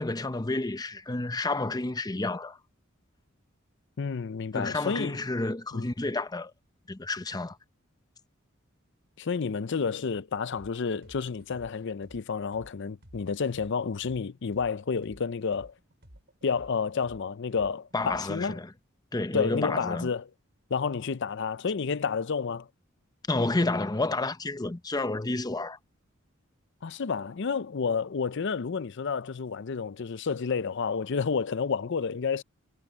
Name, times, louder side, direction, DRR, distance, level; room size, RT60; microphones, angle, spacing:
voice 1, 0.0-2.6 4.5-6.5 6.9-7.6 17.9-18.7 19.1-20.1 23.3-25.8, left 2 dB, 20° left, 0.7 m, -30 dB
voice 2, 4.0-5.2 5.7-5.9 9.2-15.7 16.4-18.6 19.3-20.2 20.7-22.7 26.8-32.4, left 5 dB, 60° left, 0.5 m, -30 dB
sound 1, 10.5-10.7 11.0-14.7 15.0-18.4, equal, 55° right, 5.8 m, -53 dB
head